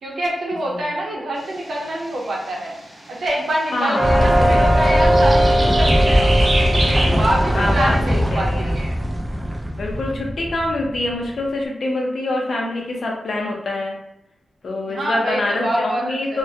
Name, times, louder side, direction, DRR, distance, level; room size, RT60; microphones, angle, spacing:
voice 1, 0.0-2.8 3.1-6.4 6.8-9.0 14.9-16.4, right 1 dB, 70° right, -2 dB, 0.7 m, -25 dB
sound 1, 1.4-8.3, right 1 dB, 35° right, 0.8 m, -29 dB
voice 2, 3.7-4.7 7.5-8.7 9.8-14.0 14.6-16.4, left 2 dB, 65° left, -1 dB, 0.6 m, -25 dB
sound 2, 3.9-9.6, right 1 dB, 10° left, 0.8 m, -22 dB
sound 3, 4.0-11.4, equal, 10° right, 0.3 m, -20 dB
2.1 x 2.1 x 2.7 m, 0.86 s
wide cardioid pair, 110°, 0 cm